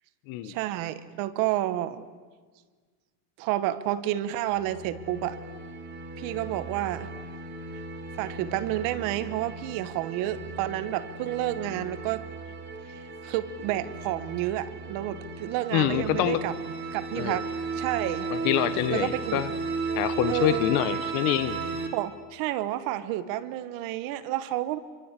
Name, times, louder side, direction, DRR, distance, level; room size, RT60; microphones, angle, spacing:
voice 1, 0.4-2.0 3.4-5.4 6.2-7.1 8.1-12.2 13.2-16.5 16.9-18.3 18.9-19.4 20.2-20.7 21.9-24.8, right 14 dB, 45° right, 14 dB, 1.3 m, -30 dB
sound 1, 4.5-21.9, right 4 dB, 20° right, 3.1 m, -36 dB
voice 2, 15.7-16.4 17.2-17.4 18.3-19.5 20.0-21.6, left 12 dB, 40° left, 14 dB, 1.3 m, -26 dB
28.0 x 24.5 x 8.3 m, 1.5 s
cardioid pair, 175°, 48 cm